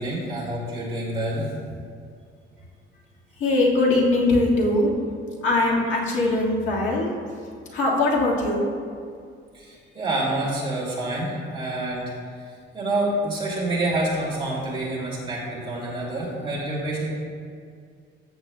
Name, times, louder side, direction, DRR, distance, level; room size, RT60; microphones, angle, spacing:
voice 1, 0.0-1.5 9.5-12.1 12.7-17.1, right 1 dB, 25° right, -6 dB, 2.3 m, -27 dB
voice 2, 3.4-4.9 5.4-7.2 7.7-8.7, left 2 dB, 70° left, -4 dB, 1.8 m, -21 dB
14.0 x 8.0 x 2.2 m, 2.1 s
cardioid pair, 175°, 21 cm